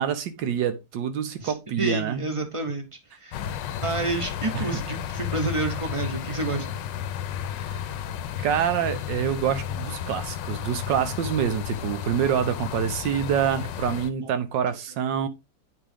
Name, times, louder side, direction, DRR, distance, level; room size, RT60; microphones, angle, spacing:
voice 1, 0.0-2.3 4.5-4.8 8.4-15.3, right 8 dB, 80° right, 1.5 m, -26 dB
voice 2, 1.4-2.9 3.2-3.4 3.8-6.8, right 2 dB, 25° right, 0.7 m, -29 dB
sound 1, 3.3-14.1, left 9 dB, 75° left, 1.2 m, -33 dB
8.6 x 3.7 x 3.4 m
omnidirectional pair, 2.0 m